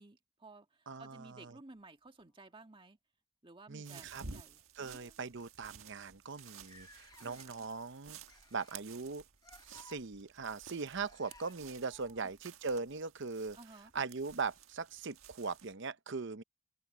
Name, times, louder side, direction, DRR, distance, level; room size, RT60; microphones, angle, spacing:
voice 1, 0.0-3.0 3.4-5.1 7.2-7.7 11.6-12.3 13.6-13.9, right 2 dB, 25° right, 1.8 m, -56 dB
voice 2, 0.9-1.6 3.7-4.2 4.8-8.2 8.5-9.2 9.6-13.6 13.9-16.4, right 4 dB, 55° right, 0.8 m, -40 dB
sound 1, 1.7-2.9 3.9-4.1 4.5-4.7 5.4-5.5 5.7-5.8 6.4-7.7 8.3-8.9 9.4-10.0 11.1-11.6 13.7-13.8 14.9-15.0, left 3 dB, 20° left, 1.0 m, -60 dB
sound 2, 3.8-15.7, right 5 dB, 75° right, 1.5 m, -54 dB
head